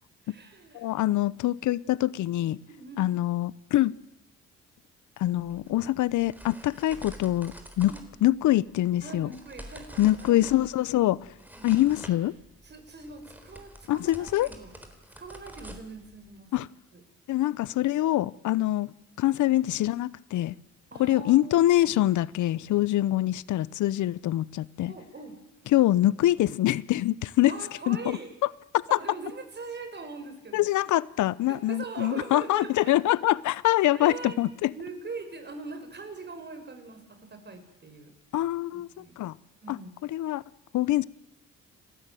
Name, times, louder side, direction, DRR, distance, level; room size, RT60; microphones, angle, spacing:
voice 1, 0.2-0.9 2.7-3.1 7.9-8.2 9.0-10.4 11.6-11.8 12.6-14.7 15.2-16.5 16.9-17.0 20.9-21.5 24.9-25.4 27.5-28.4 28.9-30.7 31.5-32.9 33.9-34.4 34.7-38.1 38.7-39.2 39.6-40.0, right 4 dB, 35° right, 5.3 m, -42 dB
voice 2, 0.7-2.6 3.0-3.9 5.2-7.9 8.2-9.3 10.0-11.3 11.6-12.3 13.9-14.5 16.5-16.7 17.3-18.9 19.2-20.5 21.0-24.9 25.7-27.5 27.9-28.2 28.9-29.0 30.5-34.7 38.3-39.3 39.7-39.8 40.1-40.4 40.7-41.0, left 15 dB, 75° left, 0.8 m, -24 dB
sound 1, 5.2-16.4, equal, 5° right, 3.9 m, -48 dB
30.0 x 13.0 x 9.2 m
cardioid pair, 90°, 30 cm